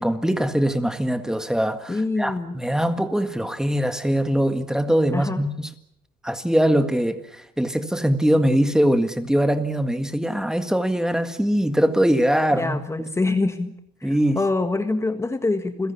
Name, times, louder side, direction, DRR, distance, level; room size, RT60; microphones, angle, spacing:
voice 1, 0.0-5.7 6.2-13.1 14.0-14.4, equal, 5° right, 1.8 m, -22 dB
voice 2, 1.9-2.6 5.1-5.4 12.5-13.7 14.0-15.9, left 3 dB, 15° left, 1.6 m, -25 dB
29.0 x 16.5 x 8.4 m
cardioid pair, 110°, 17 cm